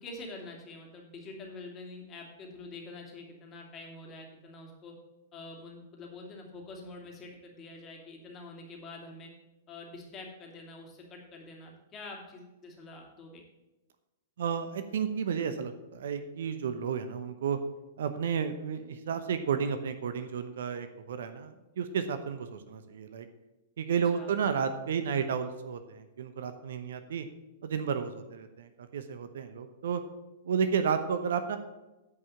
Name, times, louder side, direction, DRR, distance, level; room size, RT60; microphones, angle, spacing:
voice 1, 0.0-4.9 5.3-9.3 9.7-13.4 24.1-24.4, left 2 dB, 30° left, 0 dB, 2.6 m, -46 dB
voice 2, 14.4-17.6 18.0-23.3 23.8-27.3 27.6-30.0 30.4-31.6, right 7 dB, 65° right, 9 dB, 0.9 m, -32 dB
9.6 x 5.4 x 7.1 m, 1.0 s
figure-of-eight pair, 105°, 0 cm